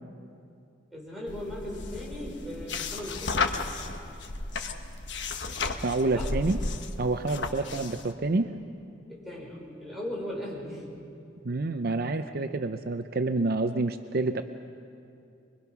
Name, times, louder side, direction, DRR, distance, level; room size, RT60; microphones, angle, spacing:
voice 1, 0.9-3.4 6.1-6.3 7.6-7.8 9.1-10.9, left 1 dB, ahead, -5 dB, 5.5 m, -38 dB
sound 1, 1.3-8.1, left 3 dB, 75° left, 1.2 m, -34 dB
voice 2, 5.8-6.6 7.0-8.5 11.4-14.4, right 2 dB, 55° right, 9 dB, 0.6 m, -28 dB
24.5 x 22.5 x 6.0 m, 2.5 s
head